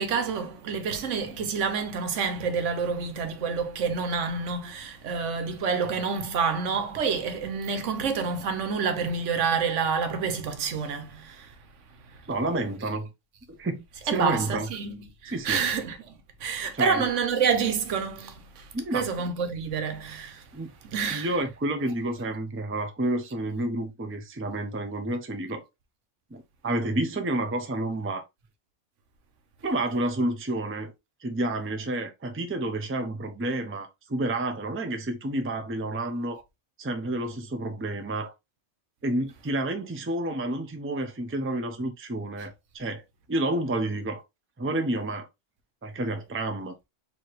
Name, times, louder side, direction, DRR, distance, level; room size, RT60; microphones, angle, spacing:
voice 1, 0.0-11.5 12.1-12.2 14.1-20.5 20.8-21.3, right 5 dB, 80° right, 1.1 m, -28 dB
voice 2, 12.3-13.1 13.5-14.7 15.3-15.6 16.7-17.1 18.7-19.0 20.5-20.7 21.1-25.7 26.3-28.2 29.6-30.9 31.2-36.4 36.8-38.3 39.0-43.0 43.3-44.2 44.6-45.3 45.8-46.7, right 1 dB, 15° right, 0.5 m, -30 dB
4.7 x 2.8 x 3.0 m
omnidirectional pair, 1.2 m